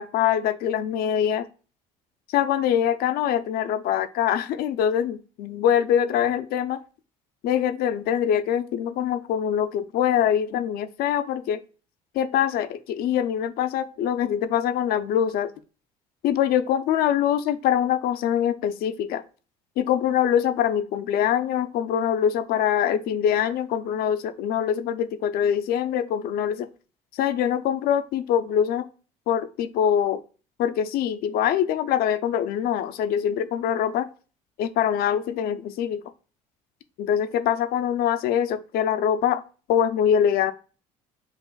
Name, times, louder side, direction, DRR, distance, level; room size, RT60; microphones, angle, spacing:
voice 1, 0.0-1.5 2.3-6.8 7.4-11.6 12.1-15.5 16.2-19.2 19.8-26.7 27.1-28.9 29.3-30.2 30.6-34.1 34.6-36.0 37.0-39.4 39.7-40.5, left 9 dB, 65° left, 11 dB, 0.5 m, -24 dB
6.3 x 2.4 x 2.2 m, 0.36 s
supercardioid pair, 75°, 17 cm